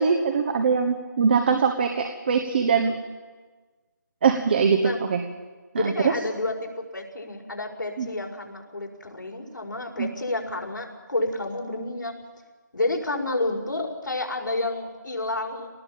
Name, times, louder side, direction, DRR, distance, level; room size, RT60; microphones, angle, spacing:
voice 1, 0.0-2.9 4.2-5.2 5.7-6.1 8.0-8.1 10.0-10.1, right 5 dB, 30° right, 5 dB, 1.2 m, -22 dB
voice 2, 5.8-12.1 12.7-15.7, left 2 dB, 85° left, 1 dB, 5.2 m, -30 dB
24.0 x 19.0 x 7.3 m, 1.4 s
figure-of-eight pair, 165°, 10 cm